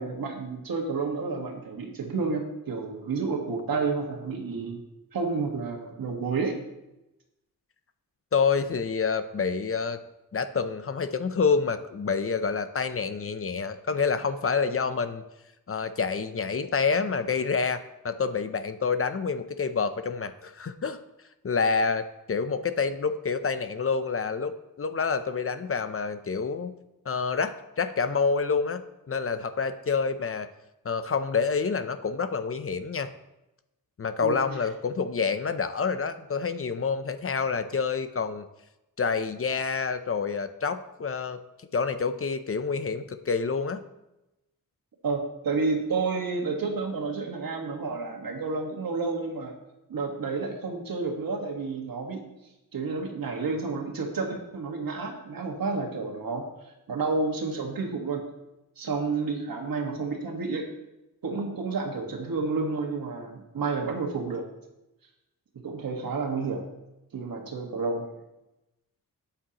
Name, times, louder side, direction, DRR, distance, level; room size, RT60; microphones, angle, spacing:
voice 1, 0.0-4.8 5.1-6.5 34.2-34.3 45.0-49.5 49.9-52.3 52.7-56.4 56.9-58.2 58.8-60.7 61.2-64.4 65.6-66.6 67.1-68.0, right 4 dB, 80° right, 2 dB, 1.7 m, -30 dB
voice 2, 8.3-10.0 10.3-15.2 15.7-21.0 21.4-24.5 24.8-26.7 27.1-30.5 30.8-33.1 34.0-38.5 39.0-41.4 41.7-43.8, left 5 dB, 40° left, 10 dB, 0.6 m, -28 dB
12.5 x 8.7 x 3.0 m, 0.94 s
wide cardioid pair, 120°, 34 cm